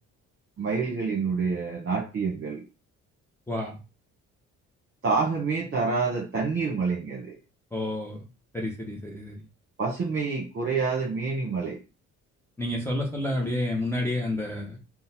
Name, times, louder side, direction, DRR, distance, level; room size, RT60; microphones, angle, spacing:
voice 1, 0.6-2.6 5.0-7.3 9.8-11.8, right 4 dB, 45° right, -1 dB, 1.2 m, -27 dB
voice 2, 3.5-3.8 7.7-8.2 8.5-9.4 12.6-14.8, left 1 dB, 10° left, -1 dB, 0.8 m, -30 dB
3.9 x 2.3 x 4.1 m, 0.31 s
cardioid pair, 90°, 30 cm